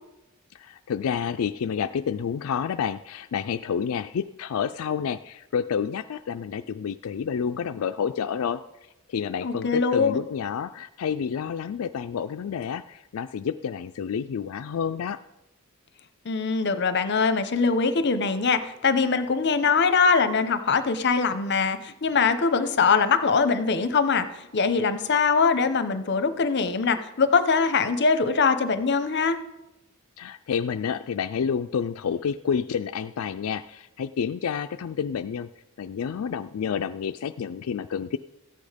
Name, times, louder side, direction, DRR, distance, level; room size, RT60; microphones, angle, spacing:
voice 1, 0.5-8.6 9.1-15.2 30.2-35.5 35.8-38.2, left 7 dB, 80° left, 9 dB, 0.4 m, -29 dB
voice 2, 9.4-10.2 16.2-24.3 24.5-29.4, left 5 dB, 55° left, 11 dB, 0.8 m, -22 dB
14.0 x 8.5 x 5.1 m, 0.94 s
head